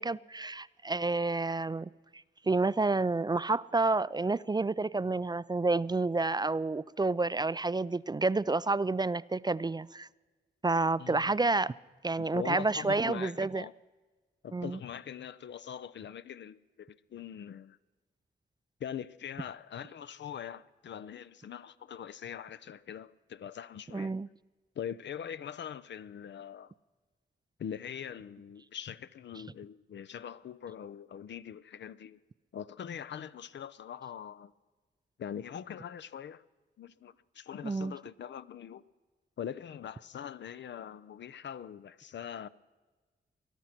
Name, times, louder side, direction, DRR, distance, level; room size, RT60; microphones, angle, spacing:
voice 1, 0.0-10.1 10.6-11.7 12.0-13.7 14.5-14.8 23.9-24.3 37.6-38.0, right 3 dB, 20° right, 0.4 m, -29 dB
voice 2, 11.0-11.3 12.2-13.7 14.4-17.8 18.8-24.1 24.8-26.7 27.6-32.2 32.5-34.5 35.2-36.4 36.8-38.8 39.4-42.5, left 9 dB, 65° left, 0.6 m, -42 dB
20.0 x 12.0 x 5.9 m
supercardioid pair, 45°, 20 cm